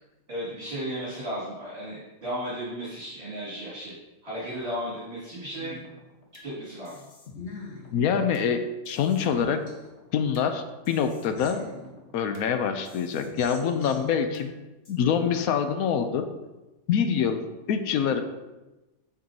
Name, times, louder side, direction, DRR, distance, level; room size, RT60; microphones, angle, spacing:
voice 1, 0.3-4.0 4.2-5.8 6.4-7.0, equal, 40° right, -10 dB, 2.5 m, -34 dB
sound 1, 5.6-6.5 6.8-8.5 8.8-10.5 10.8-12.5 12.8-14.5 14.8-14.9, left 3 dB, 55° left, 1.5 m, -44 dB
voice 2, 7.9-9.6 10.1-11.6 12.1-14.5 14.9-16.2 16.9-17.4 17.7-18.2, left 7 dB, 85° left, 8 dB, 1.1 m, -25 dB
7.5 x 6.9 x 2.7 m, 1.1 s
omnidirectional pair, 1.5 m